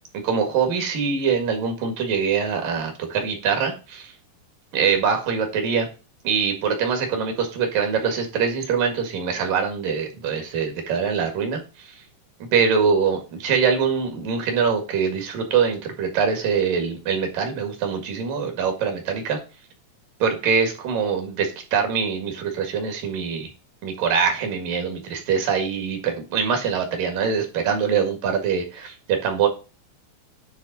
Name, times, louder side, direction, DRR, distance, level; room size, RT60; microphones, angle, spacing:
voice 1, 0.2-4.1 4.7-5.9 6.2-11.9 12.5-19.4 20.2-23.5 23.8-29.5, right 6 dB, 75° right, 4 dB, 3.4 m, -23 dB
9.6 x 3.8 x 4.0 m, 0.32 s
omnidirectional pair, 4.0 m